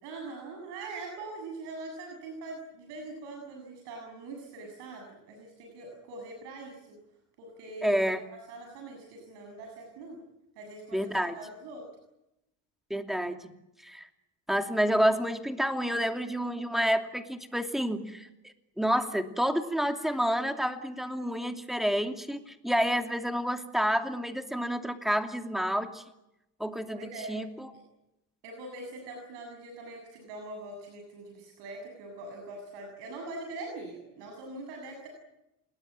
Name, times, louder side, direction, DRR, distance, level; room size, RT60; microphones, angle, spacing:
voice 1, 0.0-7.0 7.4-10.2 10.6-11.8 26.9-27.4 28.4-35.1, right 2 dB, 90° right, 2 dB, 7.7 m, -43 dB
voice 2, 7.8-8.2 10.9-11.4 12.9-13.5 13.8-14.1 14.5-26.0 26.6-27.7, equal, ahead, 6 dB, 2.8 m, -29 dB
28.5 x 20.0 x 8.9 m, 0.89 s
cardioid pair, 115°, 40 cm